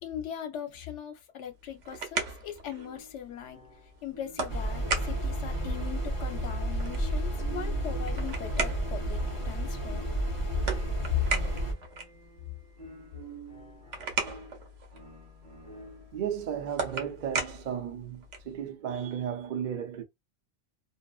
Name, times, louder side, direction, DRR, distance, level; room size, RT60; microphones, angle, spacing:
voice 1, 0.0-3.6 4.0-10.0 11.1-11.2, left 10 dB, 75° left, 1.0 m, -39 dB
sound 1, 1.5-18.6, right 4 dB, 85° right, 1.1 m, -39 dB
sound 2, 2.7-16.3, right 2 dB, 35° right, 1.2 m, -50 dB
Desert ambient, 4.5-11.7, right 1 dB, 30° left, 1.0 m, -31 dB
voice 2, 16.1-20.0, right 9 dB, 55° right, 0.5 m, -34 dB
2.6 x 2.4 x 2.3 m
omnidirectional pair, 1.2 m